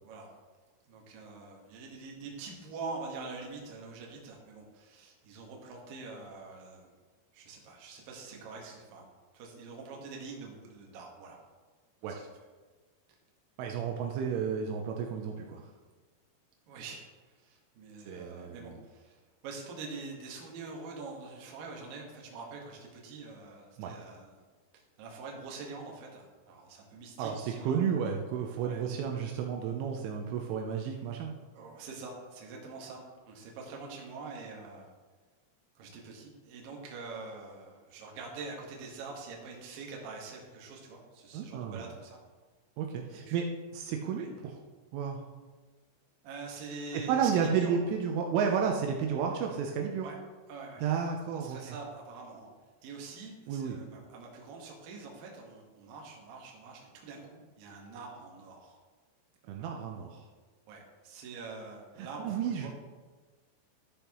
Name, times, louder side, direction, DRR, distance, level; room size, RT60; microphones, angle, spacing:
voice 1, 0.9-6.9 7.3-9.1 9.3-11.4 12.0-12.3 14.0-14.5 16.7-17.1 17.4-19.2 19.4-24.3 25.0-27.8 28.6-28.8 31.5-33.0 33.3-34.9 35.8-42.2 43.1-43.4 44.2-44.3 46.2-47.8 50.0-50.2 50.5-50.8 51.4-52.5 52.8-58.8 59.6-59.8 60.7-62.7, right 4 dB, 60° right, -1 dB, 2.5 m, -45 dB
voice 2, 13.6-15.6 18.1-18.8 23.8-24.0 27.2-31.3 41.3-41.9 42.8-43.4 43.7-44.5 44.9-45.2 46.9-50.1 50.8-51.6 53.5-53.8 59.5-60.2 62.0-62.7, right 7 dB, 80° right, 2 dB, 3.1 m, -32 dB
13.5 x 6.8 x 3.0 m, 1.3 s
omnidirectional pair, 5.8 m